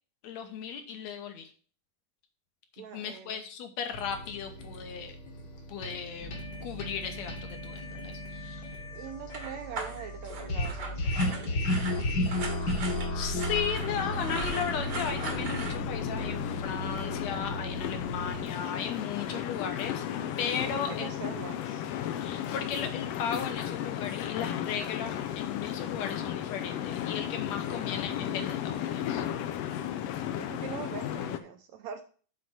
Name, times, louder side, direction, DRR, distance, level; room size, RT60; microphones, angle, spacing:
voice 1, 0.2-1.5 2.8-5.2 5.7-6.3 6.6-8.7 13.1-20.0 20.4-21.1 22.2-29.3, left 7 dB, 65° left, 7 dB, 2.0 m, -36 dB
voice 2, 2.8-3.4 8.9-11.8 19.3-19.4 20.7-21.9 27.7-27.9 30.4-32.0, right 8 dB, 80° right, 6 dB, 1.7 m, -43 dB
sound 1, 3.9-18.4, left 1 dB, 45° left, 1.5 m, -34 dB
sound 2, 9.3-15.7, right 4 dB, 55° right, 1.2 m, -39 dB
sound 3, 13.8-31.4, left 10 dB, 80° left, 1.4 m, -34 dB
7.6 x 4.2 x 6.2 m, 0.40 s
omnidirectional pair, 3.7 m